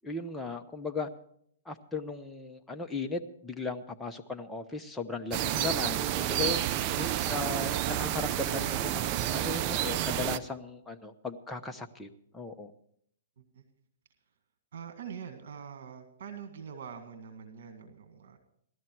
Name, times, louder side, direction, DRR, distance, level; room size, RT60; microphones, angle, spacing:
voice 1, 0.0-1.1 1.6-6.6 7.0-12.7, left 3 dB, 10° left, 4 dB, 0.9 m, -37 dB
sound 1, 5.3-10.4, right 11 dB, 35° right, 0.6 m, -30 dB
voice 2, 14.7-18.4, right 7 dB, 70° right, 5 dB, 1.9 m, -44 dB
17.0 x 12.5 x 4.6 m, 0.69 s
hypercardioid pair, 140°, 0 cm